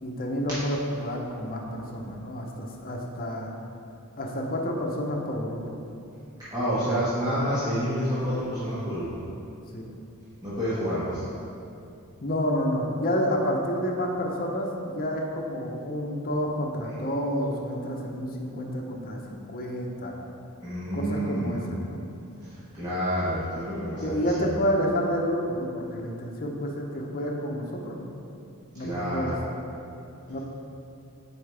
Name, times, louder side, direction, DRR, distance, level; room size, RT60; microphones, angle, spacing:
voice 1, 0.0-3.5 4.2-5.8 9.7-9.8 12.2-20.2 20.9-22.0 24.0-28.1 28.8-29.3 30.3-30.4, equal, 40° left, 0 dB, 0.8 m, -29 dB
voice 2, 6.5-9.0 10.4-11.2 20.6-21.6 22.7-24.5 28.8-29.4, equal, 15° right, -13 dB, 1.3 m, -28 dB
8.5 x 4.6 x 3.4 m, 2.7 s
head